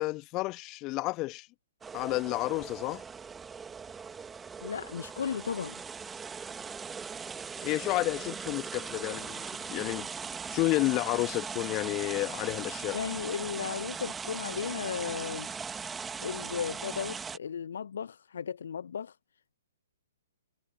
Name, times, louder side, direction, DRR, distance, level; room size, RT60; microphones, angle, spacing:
voice 1, 0.0-1.5 1.9-3.0 7.6-10.1 10.5-13.0, left 21 dB, 25° left, 1.4 m, -31 dB
sound 1, 1.8-17.4, right 6 dB, 10° right, 1.7 m, -40 dB
voice 2, 4.6-5.8 12.9-15.5 16.2-19.2, left 7 dB, 55° left, 0.9 m, -35 dB
figure-of-eight pair, 120°, 0 cm